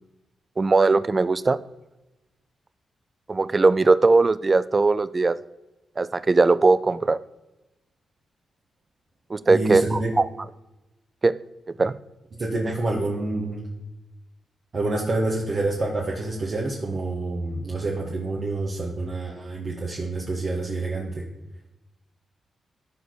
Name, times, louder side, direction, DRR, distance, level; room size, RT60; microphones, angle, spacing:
voice 1, 0.6-1.6 3.3-5.4 6.0-7.2 9.3-10.3 11.2-11.3 11.8-12.0, right 3 dB, 40° right, 17 dB, 0.5 m, -19 dB
voice 2, 9.5-10.1 12.4-13.7 14.7-21.2, right 2 dB, 55° right, -3 dB, 1.6 m, -27 dB
13.0 x 4.7 x 4.1 m, 1.0 s
hypercardioid pair, 40°, 0 cm